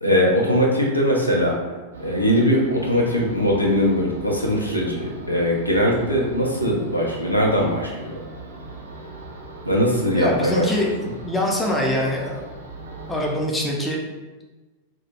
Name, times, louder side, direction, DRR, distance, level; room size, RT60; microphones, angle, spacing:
voice 1, 0.0-1.5 2.0-8.1 9.7-10.6, equal, 85° left, -2 dB, 0.4 m, -20 dB
sound 1, 1.9-13.4, right 3 dB, 65° right, 0.3 m, -38 dB
voice 2, 10.1-10.9 11.2-12.4 13.1-14.0, left 1 dB, 10° left, -2 dB, 0.5 m, -23 dB
2.2 x 2.0 x 2.9 m, 1.2 s
figure-of-eight pair, 90°, 0 cm